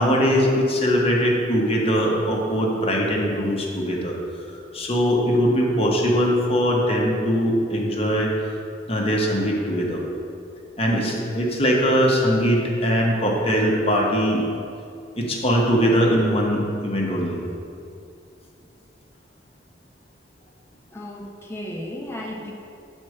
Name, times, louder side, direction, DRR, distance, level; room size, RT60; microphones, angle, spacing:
voice 1, 0.0-4.1 4.7-8.3 8.9-10.0 10.8-14.4 15.2-17.4, equal, 35° left, -2 dB, 1.1 m, -21 dB
voice 2, 20.9-22.5, left 1 dB, 15° left, -2 dB, 1.0 m, -34 dB
7.9 x 4.5 x 6.4 m, 2.4 s
head